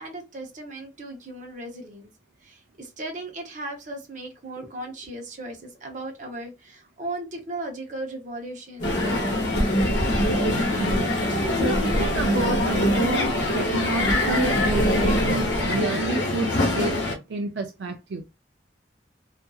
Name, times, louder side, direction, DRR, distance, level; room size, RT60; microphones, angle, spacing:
voice 1, 0.0-2.1 2.4-9.4, right 2 dB, 45° right, 0.8 m, -37 dB
Crowd, 8.8-17.1, left 2 dB, 80° left, 0.8 m, -25 dB
sound 1, 8.8-15.8, equal, 45° left, 0.9 m, -26 dB
voice 2, 10.7-11.2 11.6-17.0 17.3-18.2, right 3 dB, 75° right, 0.4 m, -30 dB
2.6 x 2.5 x 2.3 m
head